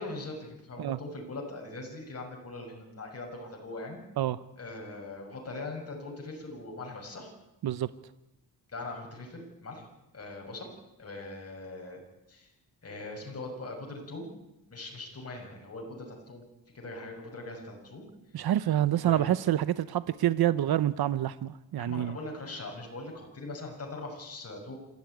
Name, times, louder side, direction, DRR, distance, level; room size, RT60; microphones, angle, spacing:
voice 1, 0.0-4.0 4.6-7.3 8.7-9.9 10.1-10.7 11.0-12.0 12.3-12.5 12.8-14.3 14.7-16.4 16.7-18.0 19.0-19.3 21.8-24.8, left 2 dB, 40° left, 1 dB, 6.2 m, -41 dB
voice 2, 18.3-22.2, right 12 dB, 90° right, 15 dB, 0.7 m, -27 dB
27.0 x 14.5 x 9.2 m, 0.95 s
wide cardioid pair, 115°, 36 cm